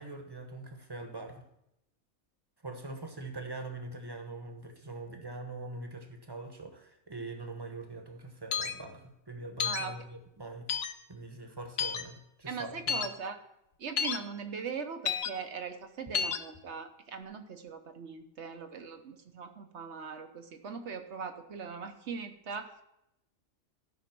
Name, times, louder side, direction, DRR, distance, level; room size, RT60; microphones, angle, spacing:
voice 1, 0.0-1.4 2.6-10.7 11.1-13.0, right 2 dB, 20° right, 5 dB, 1.2 m, -43 dB
sound 1, 8.5-8.7 9.6-9.8 10.7-10.9 11.8-12.0 12.9-13.1 14.0-14.2 15.0-15.3 16.1-16.4, left 7 dB, 55° left, 0.9 m, -30 dB
voice 2, 9.6-10.0 12.5-13.4 13.8-22.7, right 5 dB, 55° right, 7 dB, 1.2 m, -40 dB
13.5 x 5.6 x 6.0 m, 0.83 s
omnidirectional pair, 1.5 m